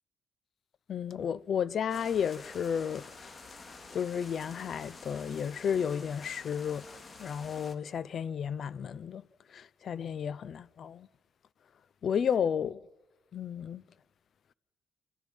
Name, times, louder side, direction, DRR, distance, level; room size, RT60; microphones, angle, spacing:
voice 1, 0.9-3.4 3.9-6.9 7.2-9.2 9.5-11.1 12.0-12.8 13.3-13.8, left 7 dB, 55° left, 0.8 m, -32 dB
sound 1, 1.9-7.7, left 3 dB, 35° left, 3.0 m, -49 dB
29.0 x 29.0 x 5.6 m
cardioid pair, 90°, 0 cm